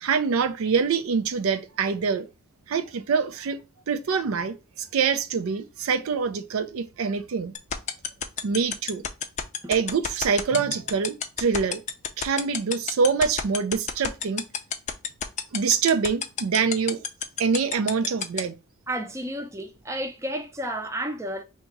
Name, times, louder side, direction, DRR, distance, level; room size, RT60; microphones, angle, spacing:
voice 1, 0.0-2.3 2.7-3.6 3.9-7.5 8.4-9.1 9.7-11.8 12.2-14.4 15.5-17.0 17.4-18.5, right 5 dB, 75° right, 0.4 m, -25 dB
sound 1, 7.5-18.4, left 8 dB, 35° left, 0.4 m, -27 dB
voice 2, 18.9-21.4, right 1 dB, 15° right, 0.5 m, -31 dB
2.9 x 2.7 x 4.4 m
head